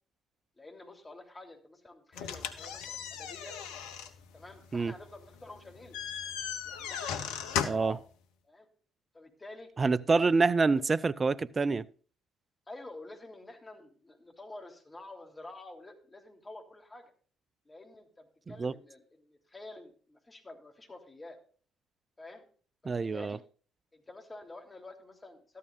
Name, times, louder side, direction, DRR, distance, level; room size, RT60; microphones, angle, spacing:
voice 1, 0.6-3.6 4.3-6.0 6.6-8.0 8.4-8.7 9.1-9.7 10.0-10.4 10.7-10.8 12.7-17.0 17.6-21.4 22.2-22.4 22.8-23.4 23.9-25.6, left 2 dB, 20° left, 3.3 m, -49 dB
sound 1, 2.1-8.0, left 8 dB, 70° left, 0.9 m, -37 dB
voice 2, 7.6-8.0 9.8-11.8 18.6-18.7 22.9-23.4, right 4 dB, 30° right, 0.5 m, -27 dB
13.5 x 12.5 x 2.5 m
figure-of-eight pair, 50°, 0 cm